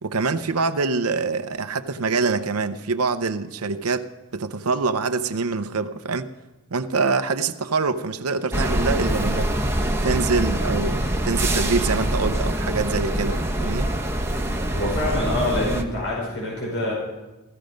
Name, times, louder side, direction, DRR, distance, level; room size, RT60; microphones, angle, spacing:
voice 1, 0.0-6.3 6.7-9.5 10.0-13.9, right 4 dB, 85° right, 0.7 m, -25 dB
sound 1, 8.5-15.8, right 1 dB, 10° right, 1.1 m, -24 dB
voice 2, 14.7-16.9, left 1 dB, 65° left, 5.9 m, -25 dB
15.5 x 15.5 x 5.2 m
head